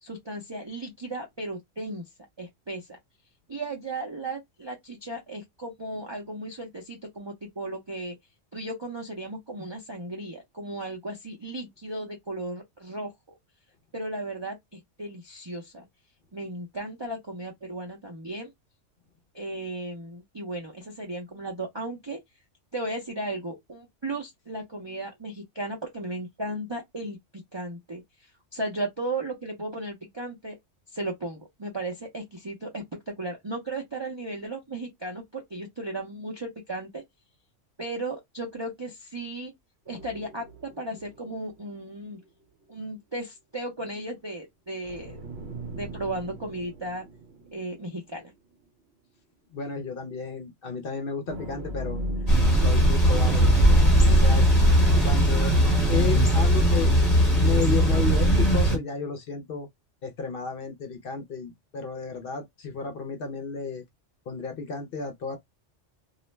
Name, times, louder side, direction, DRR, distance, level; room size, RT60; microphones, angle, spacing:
voice 1, 0.0-2.0 2.4-3.0 3.5-8.2 8.5-13.1 13.9-15.8 16.3-18.5 19.3-22.2 22.7-27.2 27.5-28.0 28.5-30.6 30.9-37.0 37.8-39.5 39.9-42.2 42.7-45.2 45.7-47.0 47.5-48.3, right 2 dB, 40° right, 0.4 m, -35 dB
sound 1, 39.9-41.9 42.2-42.3 44.8-48.2 48.6-48.7 51.3-54.6, equal, 65° right, 0.8 m, -38 dB
voice 2, 49.5-52.0 52.5-53.6 54.1-54.5 54.9-55.5 55.9-56.9 57.3-59.7 60.0-63.8 64.3-65.4, left 5 dB, 60° left, 0.7 m, -32 dB
Thunder / Bicycle, 52.3-58.8, equal, 35° left, 1.0 m, -19 dB
2.4 x 2.1 x 3.1 m
omnidirectional pair, 1.3 m